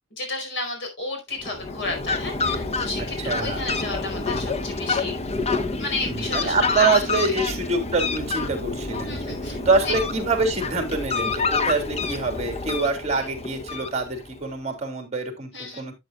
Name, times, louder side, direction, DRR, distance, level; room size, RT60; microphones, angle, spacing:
voice 1, 0.1-5.1 5.8-7.4 9.0-9.6 9.8-10.0 15.5-15.9, left 2 dB, 60° left, 3 dB, 4.7 m, -32 dB
Fowl, 1.4-14.4, left 3 dB, 30° left, 0.8 m, -28 dB
voice 2, 3.2-3.6 6.1-15.9, right 3 dB, 35° right, 5 dB, 3.1 m, -25 dB
12.5 x 7.9 x 2.4 m, 0.20 s
head